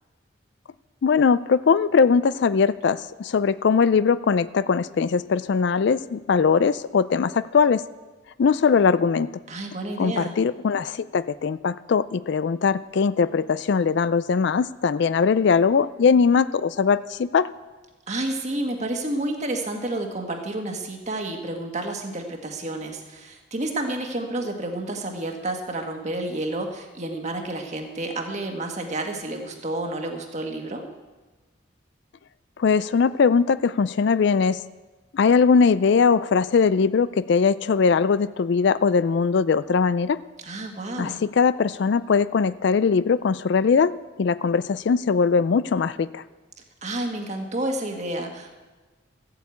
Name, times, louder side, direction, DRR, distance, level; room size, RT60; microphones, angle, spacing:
voice 1, 1.0-7.8 8.4-9.3 10.0-17.5 32.6-34.6 35.1-40.2 41.0-43.9 44.2-46.2, left 5 dB, 60° left, 16 dB, 0.4 m, -20 dB
voice 2, 9.5-10.4 18.1-30.8 40.4-41.2 46.8-48.5, right 2 dB, 35° right, 3 dB, 1.6 m, -30 dB
14.0 x 8.2 x 8.4 m, 1.3 s
head